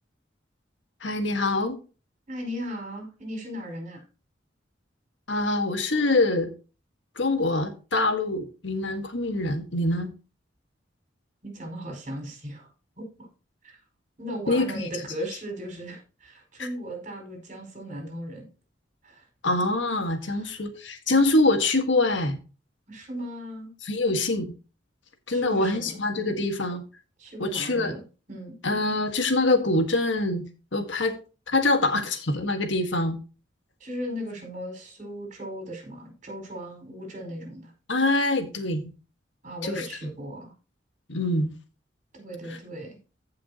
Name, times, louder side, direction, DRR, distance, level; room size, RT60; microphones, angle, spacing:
voice 1, 1.0-1.8 5.3-6.5 7.1-10.1 14.5-14.8 16.6-16.7 19.4-22.4 23.8-24.5 25.3-26.8 27.4-27.9 28.6-30.4 30.7-31.2 31.5-33.2 37.9-38.8 39.6-40.1 41.1-41.5 42.5-42.6, left 2 dB, 70° left, 1.6 m, -24 dB
voice 2, 2.3-4.0 11.4-12.7 13.0-13.3 13.6-13.8 14.2-18.5 19.0-19.2 20.3-20.5 22.9-23.7 25.3-25.9 26.3-26.4 27.2-28.0 28.3-28.6 33.8-37.7 39.4-40.5 42.1-42.9, equal, 40° right, 4.9 m, -37 dB
15.0 x 5.8 x 2.8 m
head